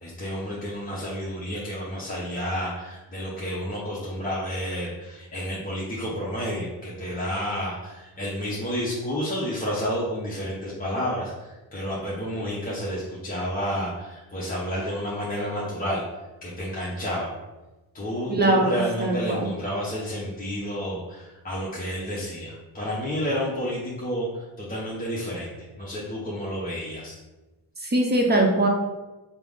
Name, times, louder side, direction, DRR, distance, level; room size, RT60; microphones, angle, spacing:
voice 1, 0.0-16.1 16.4-17.4 17.9-27.2, equal, 20° left, -6 dB, 0.7 m, -30 dB
voice 2, 18.4-18.7 19.0-19.4 27.8-28.7, right 1 dB, 20° right, 1 dB, 0.7 m, -21 dB
3.3 x 2.0 x 3.5 m, 1.1 s
cardioid pair, 65°, 48 cm